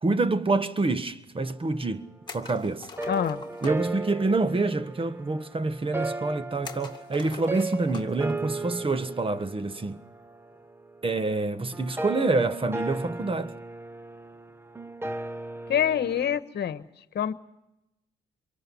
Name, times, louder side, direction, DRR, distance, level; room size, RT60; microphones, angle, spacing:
voice 1, 0.0-2.9 3.6-10.0 11.0-13.5, right 3 dB, 25° right, 1.4 m, -27 dB
sound 1, 2.3-3.9 6.6-8.3 8.6-8.7 10.3-10.6, left 4 dB, 20° left, 2.2 m, -43 dB
voice 2, 3.0-3.4 15.7-16.8 17.1-17.3, left 9 dB, 55° left, 1.4 m, -26 dB
sound 2, 3.0-16.4, right 2 dB, 10° right, 0.9 m, -36 dB
27.0 x 23.0 x 5.5 m
cardioid pair, 90°, 20 cm